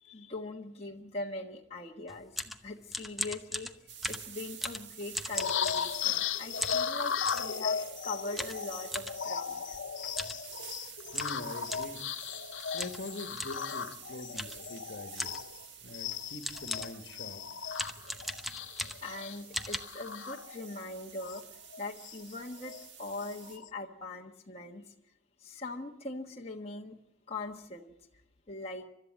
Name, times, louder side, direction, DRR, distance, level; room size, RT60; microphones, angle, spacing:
voice 1, 0.0-3.7 4.1-9.8 19.0-21.4 21.8-24.9 25.4-27.0 27.3-27.9 28.5-28.8, left 2 dB, 35° left, 0 dB, 1.4 m, -41 dB
sound 1, 2.1-6.2 6.6-7.5 8.4-9.2 10.1-10.4 10.7-10.8 11.1-12.0 12.8-13.0 13.4-13.6 14.4-14.7 15.2-15.5 16.1-16.2 16.4-17.0 17.7-19.2 19.5-19.8, equal, ahead, 0.8 m, -38 dB
sound 2, 3.9-23.6, right 8 dB, 70° right, 1.7 m, -49 dB
sound 3, 5.3-15.6 15.9-20.8 21.2-21.4 21.7-22.8 23.2-23.7, left 7 dB, 85° left, 0.7 m, -36 dB
voice 2, 10.8-12.0 12.7-15.5 15.8-17.4, left 2 dB, 60° left, 7 dB, 1.7 m, -44 dB
30.0 x 13.0 x 7.6 m, 0.81 s
head